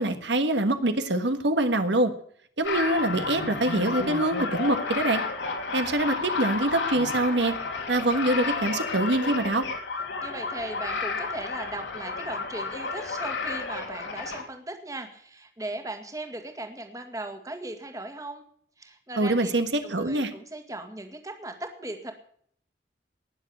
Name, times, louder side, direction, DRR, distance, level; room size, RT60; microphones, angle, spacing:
voice 1, 0.0-2.1 2.6-5.2 5.7-7.5 7.9-9.6 19.1-20.3, right 1 dB, 75° right, 8 dB, 1.5 m, -24 dB
sound 1, 2.6-14.4, left 4 dB, 80° left, 3.1 m, -31 dB
voice 2, 10.2-18.4 18.8-19.5 19.8-22.1, right 2 dB, 20° right, 6 dB, 1.9 m, -38 dB
19.5 x 7.2 x 8.5 m, 0.62 s
head